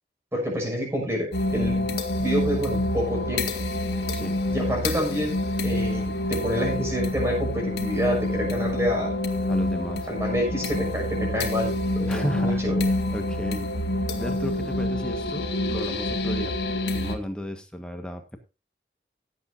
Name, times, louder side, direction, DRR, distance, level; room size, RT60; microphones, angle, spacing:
voice 1, 0.3-1.9 2.2-3.6 4.5-5.4 5.6-9.1 10.1-12.9, equal, 15° right, 0 dB, 6.3 m, -28 dB
sound 1, 1.3-17.2, left 1 dB, 80° left, 1.9 m, -27 dB
voice 2, 9.5-10.1 12.1-12.6 13.1-13.7 14.1-16.6 16.9-18.4, equal, 5° left, 5 dB, 1.5 m, -33 dB
17.5 x 8.3 x 2.7 m, 0.30 s
head